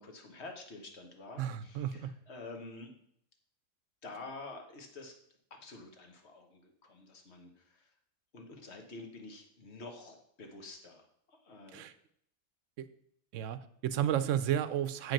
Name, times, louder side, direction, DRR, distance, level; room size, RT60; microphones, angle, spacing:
voice 1, 0.0-2.9 4.0-5.1 5.6-7.9 8.3-11.8, left 3 dB, 55° left, 4 dB, 1.5 m, -48 dB
voice 2, 1.4-2.1 11.7-11.9 13.3-15.1, right 10 dB, 75° right, 13 dB, 0.9 m, -32 dB
8.0 x 5.2 x 6.0 m, 0.70 s
omnidirectional pair, 1.4 m